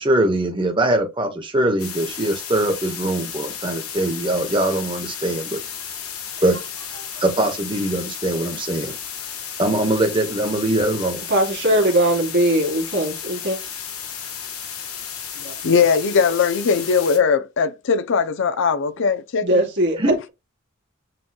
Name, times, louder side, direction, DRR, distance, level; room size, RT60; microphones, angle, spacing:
voice 1, 0.0-5.6 6.4-6.6 7.2-8.9 9.6-11.2 20.0-20.1, right 1 dB, 25° right, 0.9 m, -22 dB
sound 1, 1.8-17.2, left 8 dB, 90° left, 1.3 m, -33 dB
voice 2, 11.3-13.6 15.4-15.6 19.4-20.3, right 1 dB, 55° right, 1.9 m, -20 dB
voice 3, 15.6-19.6, left 6 dB, 60° left, 0.5 m, -19 dB
7.6 x 3.0 x 2.2 m
head